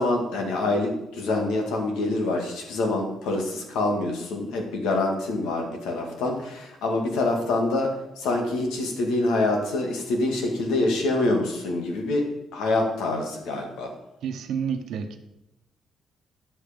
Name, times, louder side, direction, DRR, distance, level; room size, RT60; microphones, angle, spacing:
voice 1, 0.0-13.9, left 2 dB, 90° left, 3 dB, 2.1 m, -26 dB
voice 2, 14.2-15.2, right 7 dB, 75° right, 8 dB, 1.1 m, -29 dB
9.9 x 7.6 x 5.2 m, 0.87 s
cardioid pair, 90°, 0 cm